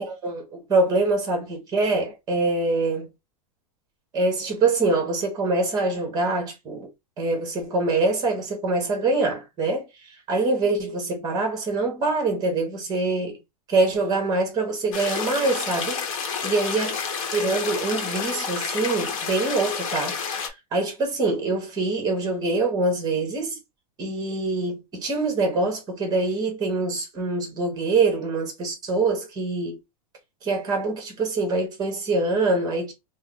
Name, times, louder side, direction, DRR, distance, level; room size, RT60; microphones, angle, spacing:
voice 1, 0.0-3.1 4.1-6.9 7.2-13.4 13.7-17.0 17.3-23.6 24.0-29.8 30.4-32.9, right 3 dB, 20° right, 1.1 m, -24 dB
sound 1, 14.9-20.5, left 5 dB, 60° left, 0.9 m, -29 dB
3.5 x 2.0 x 3.6 m
supercardioid pair, 160°, 19 cm